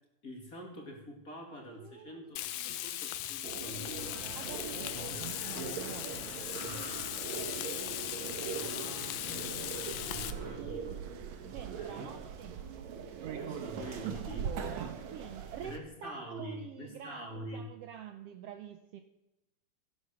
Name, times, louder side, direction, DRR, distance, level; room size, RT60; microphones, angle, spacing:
voice 1, 0.2-4.2 5.1-5.8 6.6-6.8 8.5-9.2 10.0-11.0 11.5-12.1 13.4-14.5 15.6-17.6, equal, 30° left, 1 dB, 2.6 m, -46 dB
voice 2, 1.7-2.3 2.6-2.7 4.3-6.2 11.5-12.5 14.2-19.0, right 9 dB, 85° right, 7 dB, 1.3 m, -47 dB
Frying (food), 2.4-10.3, left 13 dB, 90° left, 2.4 m, -39 dB
sound 1, 3.4-15.8, right 7 dB, 65° right, 2.3 m, -41 dB
sound 2, 4.0-10.6, right 1 dB, 45° right, 4.0 m, -48 dB
15.0 x 11.5 x 6.4 m, 0.93 s
omnidirectional pair, 3.7 m